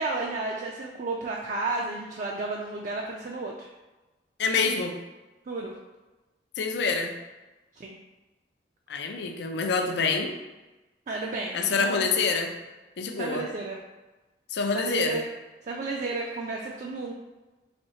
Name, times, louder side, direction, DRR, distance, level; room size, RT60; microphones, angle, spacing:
voice 1, 0.0-3.7 5.5-5.7 7.8-8.0 11.1-12.1 13.2-13.8 14.7-15.2 15.6-17.1, right 3 dB, 45° right, -1 dB, 0.3 m, -32 dB
voice 2, 4.4-5.0 6.6-7.1 8.9-10.4 11.5-12.5 13.0-13.4 14.5-15.2, left 4 dB, 70° left, 4 dB, 0.4 m, -26 dB
4.2 x 3.1 x 2.7 m, 1.1 s
head